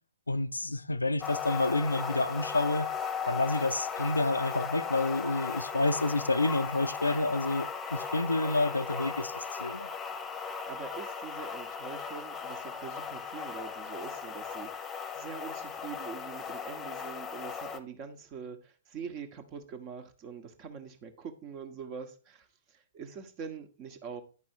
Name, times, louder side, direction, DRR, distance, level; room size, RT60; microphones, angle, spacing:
voice 1, 0.3-2.9 3.3-9.9, left 2 dB, 80° left, 0.5 m, -29 dB
sound 1, 1.2-17.8, left 6 dB, 15° left, 1.0 m, -37 dB
voice 2, 10.3-24.2, right 6 dB, 30° right, 1.3 m, -44 dB
9.9 x 5.4 x 4.5 m
figure-of-eight pair, 115°, 0 cm